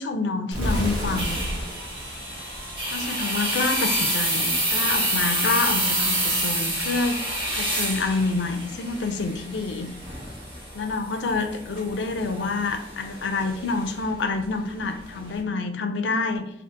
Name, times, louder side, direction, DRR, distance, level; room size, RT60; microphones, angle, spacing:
voice 1, 0.0-1.5 2.9-7.2 7.5-9.9 10.7-16.4, left 3 dB, 85° left, 7 dB, 0.4 m, -27 dB
sound 1, 0.5-3.4, equal, 80° right, 1.0 m, -30 dB
sound 2, 0.7-15.4, right 1 dB, 30° right, 1.1 m, -28 dB
2.7 x 2.4 x 3.6 m, 0.72 s
head